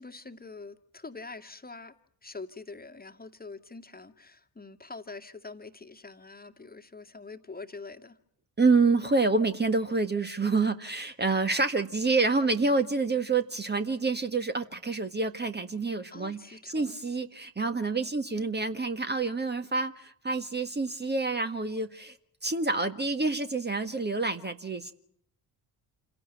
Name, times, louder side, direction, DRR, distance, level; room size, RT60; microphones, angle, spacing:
voice 1, 0.0-1.9 2.2-8.2 16.1-17.0, left 3 dB, 20° left, 6 dB, 2.0 m, -44 dB
voice 2, 8.6-22.2 22.4-24.9, right 3 dB, 20° right, 8 dB, 1.7 m, -27 dB
28.5 x 16.5 x 9.1 m, 0.67 s
figure-of-eight pair, 40°, 49 cm